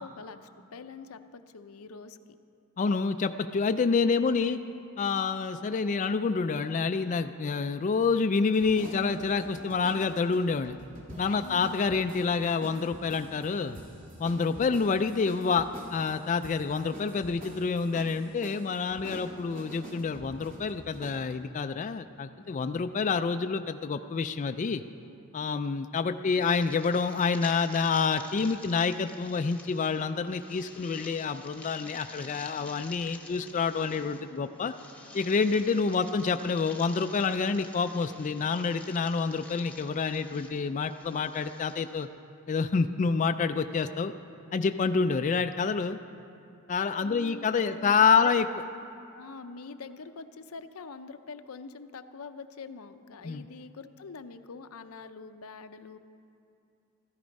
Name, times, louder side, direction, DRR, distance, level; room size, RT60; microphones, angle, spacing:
voice 1, 0.0-2.2 11.3-11.8 47.0-48.4 49.1-56.0, left 4 dB, 90° left, 9 dB, 0.6 m, -44 dB
voice 2, 2.8-4.6 5.0-10.8 11.2-13.8 14.2-24.8 25.3-34.7 35.1-42.1 42.5-44.1 44.5-46.0 46.7-48.5 53.2-53.4, left 5 dB, 35° left, 8 dB, 0.3 m, -28 dB
sound 1, 8.5-21.2, equal, 40° right, 2.2 m, -46 dB
sound 2, 26.4-42.1, left 2 dB, 5° left, 1.0 m, -49 dB
14.0 x 12.5 x 5.3 m, 2.6 s
head